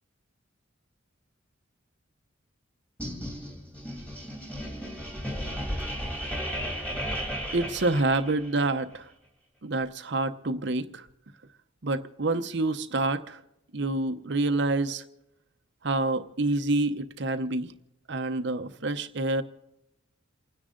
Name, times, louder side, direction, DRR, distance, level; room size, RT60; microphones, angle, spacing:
sound 1, 3.0-8.6, equal, 5° left, 2.6 m, -34 dB
voice 1, 7.5-9.1 9.6-11.1 11.8-13.4 13.7-15.0 15.8-17.7 18.1-19.4, right 2 dB, 55° right, 9 dB, 0.8 m, -27 dB
29.0 x 10.0 x 3.8 m, 0.86 s
head